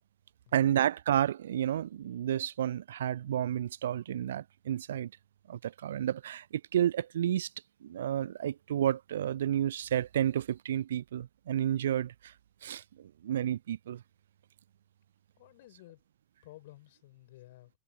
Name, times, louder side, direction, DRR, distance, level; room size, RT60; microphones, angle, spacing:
voice 1, 0.5-5.1 5.5-7.5 7.8-12.3 12.6-14.0, right 11 dB, 60° right, 0.3 m, -31 dB
voice 2, 15.4-16.0 16.4-17.7, left 17 dB, 55° left, 7.2 m, -53 dB
figure-of-eight pair, 90°, 0 cm